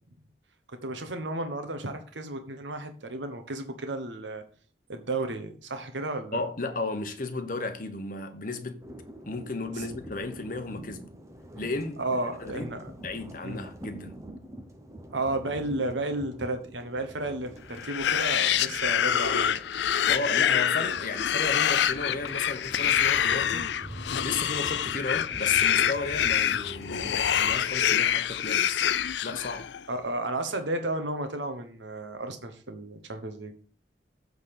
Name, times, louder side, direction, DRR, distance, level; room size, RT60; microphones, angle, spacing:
voice 1, 0.7-4.4 4.9-6.4 9.8-9.9 12.0-12.8 13.4-13.6 15.1-19.6 29.9-33.5, right 2 dB, 85° right, 1.2 m, -33 dB
voice 2, 6.3-8.8 9.2-11.1 11.6-12.7 13.0-14.1 20.1-23.7 24.2-28.9 29.2-29.7, left 3 dB, 50° left, 1.1 m, -34 dB
sound 1, 8.8-27.6, right 1 dB, 15° right, 0.9 m, -46 dB
sound 2, 17.8-29.8, left 9 dB, 75° left, 0.4 m, -26 dB
8.2 x 4.0 x 7.0 m
head